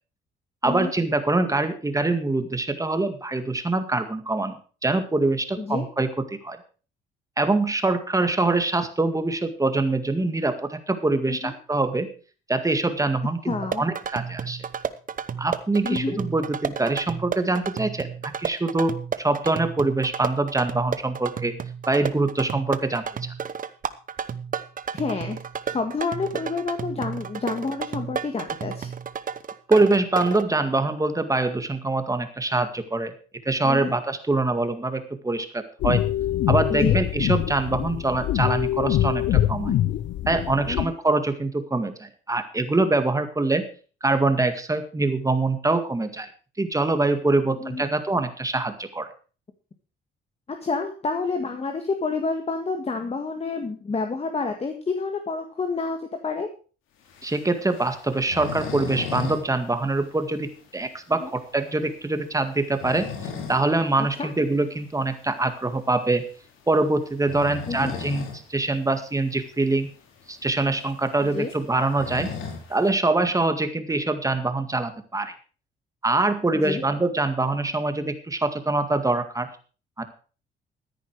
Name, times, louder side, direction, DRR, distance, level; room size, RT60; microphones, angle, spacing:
voice 1, 0.6-6.6 7.4-12.1 12.5-14.6 15.4-21.6 21.9-23.3 29.7-33.1 33.5-36.0 36.5-39.8 40.3-43.7 44.0-46.3 46.6-49.1 57.2-63.1 63.5-66.2 66.7-69.9 70.3-72.3 72.7-75.3 76.0-79.5 80.0-80.1, right 2 dB, 15° right, 8 dB, 2.0 m, -24 dB
voice 2, 5.6-5.9 11.3-11.5 13.5-13.8 15.8-16.2 24.9-25.4 25.7-28.9 33.6-33.9 36.7-37.0 40.7-40.9 47.6-47.9 50.5-56.5 61.2-61.3 64.0-64.3 67.7-68.0 71.3-71.5 76.6-76.8, left 4 dB, 30° left, 5 dB, 1.8 m, -29 dB
sound 1, 13.5-30.4, right 7 dB, 45° right, 1.0 m, -32 dB
sound 2, 35.8-40.9, left 12 dB, 70° left, 0.5 m, -24 dB
sound 3, 57.1-59.4 59.7-59.8 60.2-60.3 60.8-60.9 62.5-63.7 64.1-64.2 65.7-65.9 67.1-68.4 68.8-68.9 69.1-69.2 69.9-70.0 70.3-72.9, left 6 dB, 90° left, 2.9 m, -35 dB
14.0 x 10.0 x 4.7 m, 0.37 s
cardioid pair, 90°, 20 cm